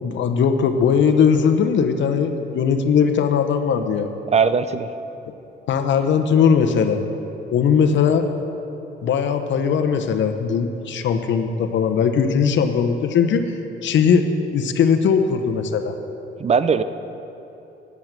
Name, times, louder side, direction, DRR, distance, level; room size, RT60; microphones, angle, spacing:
voice 1, 0.0-4.1 5.7-7.0 7.5-8.2 9.0-13.5 13.8-14.2 14.5-15.9, left 6 dB, 70° left, 7 dB, 0.9 m, -19 dB
voice 2, 4.3-4.9 16.4-16.8, right 6 dB, 35° right, 13 dB, 0.5 m, -19 dB
9.5 x 7.9 x 8.9 m, 3.0 s
cardioid pair, 90°, 20 cm